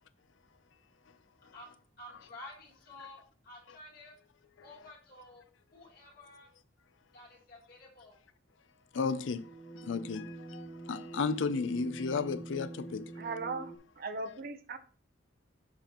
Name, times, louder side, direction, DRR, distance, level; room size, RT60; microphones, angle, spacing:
voice 1, 0.3-4.3 4.6-6.5 7.1-8.2, left 1 dB, 50° left, 1.9 m, -52 dB
voice 2, 8.9-13.2, left 4 dB, 70° left, 0.5 m, -34 dB
sound 1, 9.2-13.8, right 3 dB, 5° right, 0.4 m, -45 dB
voice 3, 13.2-14.8, right 3 dB, 50° right, 0.6 m, -38 dB
6.8 x 5.1 x 3.0 m
head